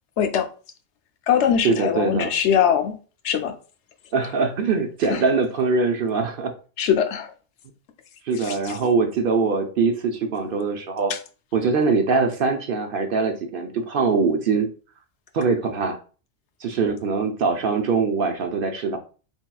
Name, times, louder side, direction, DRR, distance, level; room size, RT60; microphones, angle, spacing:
voice 1, 0.2-0.5 1.3-3.0 3.2-3.5 5.1-5.2 6.8-7.3 8.4-8.8, left 8 dB, 80° left, 0.9 m, -22 dB
voice 2, 1.6-2.3 4.1-6.5 8.2-11.1 11.5-14.7 15.3-16.0 16.6-19.0, right 4 dB, 60° right, 0.7 m, -22 dB
4.4 x 3.5 x 2.2 m
omnidirectional pair, 1.2 m